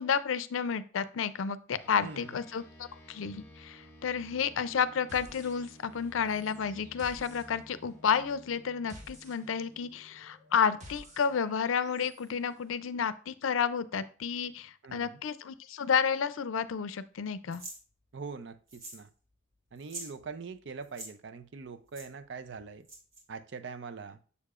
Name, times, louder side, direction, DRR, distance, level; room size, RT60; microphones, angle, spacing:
voice 1, 0.0-2.6 3.1-17.6, left 7 dB, 90° left, 0.4 m, -31 dB
sound 1, 1.8-11.5, left 1 dB, 15° left, 1.2 m, -55 dB
voice 2, 2.0-2.4 14.8-15.2 18.1-19.1 19.7-22.9 23.3-24.2, right 5 dB, 65° right, 0.5 m, -43 dB
sound 2, 5.1-6.0 6.3-12.3, equal, 35° right, 1.3 m, -53 dB
sound 3, 17.5-17.8 18.7-19.1 19.3-19.4 19.8-20.1 20.8-21.1 21.9-22.1 22.8-23.2, right 2 dB, 85° right, 2.3 m, -44 dB
6.9 x 6.6 x 2.4 m
head